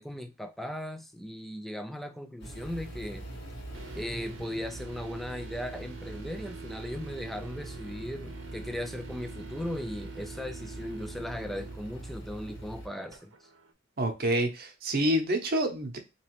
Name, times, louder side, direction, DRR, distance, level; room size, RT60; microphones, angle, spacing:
voice 1, 0.0-3.2 3.9-13.3, left 1 dB, ahead, 0.4 m, -37 dB
sound 1, 2.4-12.9, right 1 dB, 60° left, 1.5 m, -43 dB
sound 2, 3.7-13.7, right 4 dB, 90° right, 0.7 m, -47 dB
voice 2, 14.0-16.0, right 1 dB, 50° right, 0.8 m, -27 dB
4.0 x 3.0 x 3.0 m
head